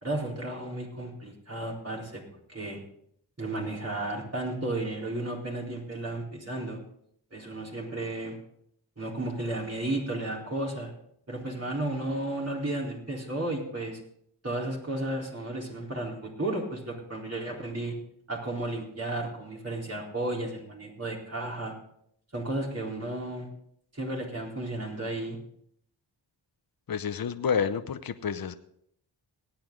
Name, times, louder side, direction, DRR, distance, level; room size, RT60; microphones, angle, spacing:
voice 1, 0.0-2.2 2.5-2.8 3.4-6.8 7.3-8.4 9.0-10.9 11.3-14.0 14.4-18.0 18.3-21.7 22.3-23.5 23.9-25.4, right 2 dB, 35° right, -2 dB, 4.1 m, -33 dB
voice 2, 26.9-28.5, left 7 dB, 50° left, 10 dB, 0.8 m, -29 dB
18.5 x 8.6 x 3.9 m, 0.69 s
cardioid pair, 50°, 44 cm